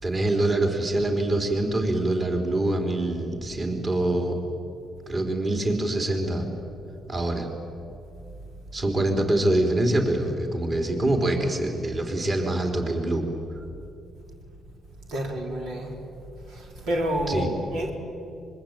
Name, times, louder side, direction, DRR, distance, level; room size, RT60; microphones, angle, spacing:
voice 1, 0.0-4.4 5.1-6.5 7.1-7.5 8.7-13.2 13.6-13.7 17.3-17.5, right 1 dB, 35° right, 3 dB, 4.1 m, -25 dB
voice 2, 15.1-15.9 16.5-17.9, equal, 90° right, 0 dB, 4.3 m, -29 dB
25.0 x 22.5 x 9.1 m, 2.7 s
cardioid pair, 90°, 0 cm